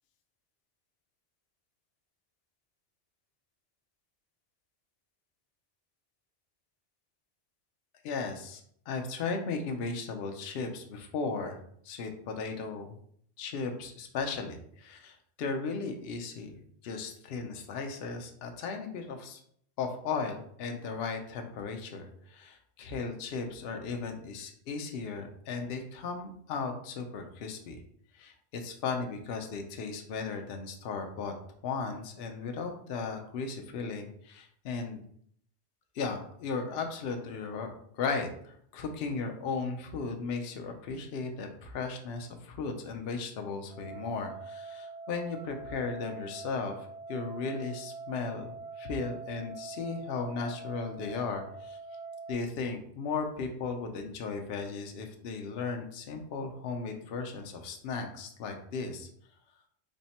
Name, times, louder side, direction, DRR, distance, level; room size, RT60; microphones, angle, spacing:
voice 1, 8.0-8.6 8.9-11.6 11.8-13.0 13.4-16.6 16.8-19.4 19.8-27.8 28.1-31.3 31.6-35.0 35.9-46.8 47.1-51.8 52.3-59.1, left 4 dB, 65° left, 4 dB, 0.8 m, -36 dB
sound 1, 43.7-52.3, right 4 dB, 5° right, 0.5 m, -44 dB
3.5 x 2.1 x 4.0 m, 0.65 s
omnidirectional pair, 1.2 m